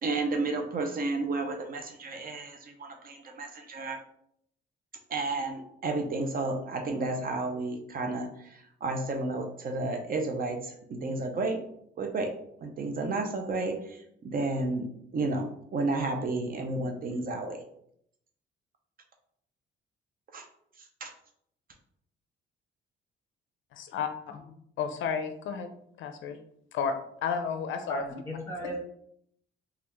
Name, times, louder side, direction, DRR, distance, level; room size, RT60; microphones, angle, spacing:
voice 1, 0.0-4.0 5.1-11.6 12.0-12.3 12.6-14.9 15.1-17.6 20.3-20.4 20.8-21.1, right 3 dB, 45° right, 4 dB, 0.5 m, -32 dB
voice 2, 23.7-24.1 24.8-25.7 26.0-26.4 26.7-26.9 27.2-28.0, left 6 dB, 75° left, 8 dB, 0.4 m, -31 dB
voice 3, 27.9-28.8, equal, 15° left, -3 dB, 1.4 m, -36 dB
3.3 x 2.3 x 3.0 m, 0.70 s
cardioid pair, 90°, 20 cm